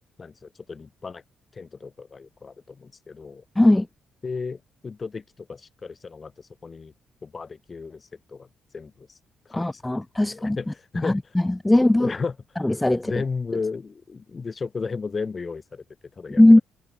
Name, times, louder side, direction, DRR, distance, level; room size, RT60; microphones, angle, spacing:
voice 1, 0.2-1.2 1.5-3.4 4.2-6.9 7.2-8.5 8.7-9.1 9.5-9.8 10.2-11.3 11.6-11.7 12.0-12.6 13.0-15.8 16.2-16.4, left 4 dB, 35° left, 3.3 m, -34 dB
voice 2, 3.6-3.9 9.5-10.6 11.6-12.1 12.6-13.1 16.4-16.6, left 1 dB, 10° left, 0.6 m, -17 dB
cardioid pair, 90°, 0 cm